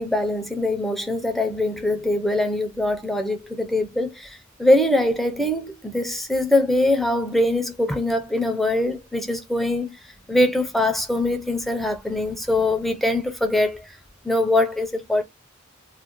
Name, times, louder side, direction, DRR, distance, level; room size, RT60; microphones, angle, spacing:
voice 1, 0.0-10.0 10.3-13.9 14.2-15.2, left 1 dB, ahead, 0.4 m, -22 dB
2.4 x 2.0 x 2.9 m
head